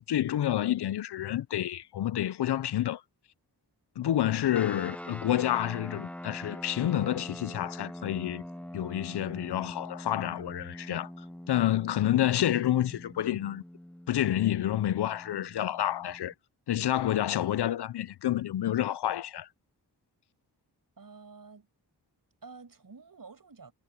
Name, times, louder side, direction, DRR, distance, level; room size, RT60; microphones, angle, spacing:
voice 1, 0.0-3.0 4.0-8.4 8.7-11.1 11.5-13.6 14.1-16.3 16.7-19.5, left 12 dB, 75° left, 0.6 m, -29 dB
sound 1, 4.5-16.3, left 1 dB, 5° left, 0.7 m, -44 dB
voice 2, 21.0-21.7 22.4-23.7, right 4 dB, 55° right, 7.0 m, -49 dB
cardioid pair, 70°, 40 cm